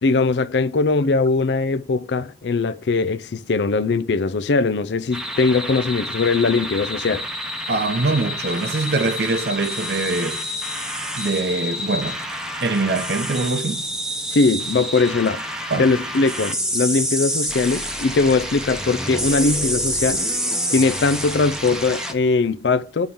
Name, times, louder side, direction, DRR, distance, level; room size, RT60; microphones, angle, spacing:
voice 1, 0.0-7.2 14.3-15.4 15.8-20.2 20.7-23.1, left 3 dB, 80° left, 0.5 m, -20 dB
sound 1, 5.1-22.1, equal, 5° right, 0.8 m, -28 dB
voice 2, 7.7-10.4 11.2-12.2 12.6-13.9 15.7-15.9, right 3 dB, 65° right, 0.8 m, -23 dB
9.2 x 3.6 x 6.9 m
head